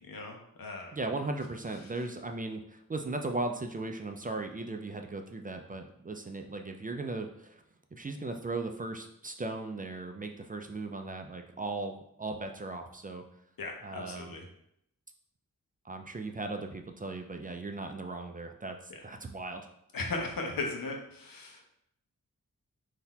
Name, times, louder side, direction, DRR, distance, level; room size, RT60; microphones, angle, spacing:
voice 1, 0.0-1.0 13.6-14.4 18.9-19.0 19.9-21.7, left 3 dB, 85° left, 1 dB, 0.9 m, -37 dB
voice 2, 0.9-7.6 7.9-13.2 13.8-14.4 15.8-18.8 19.0-19.7, right 2 dB, 25° right, 4 dB, 0.3 m, -37 dB
3.9 x 2.7 x 4.1 m, 0.75 s
wide cardioid pair, 110°, 34 cm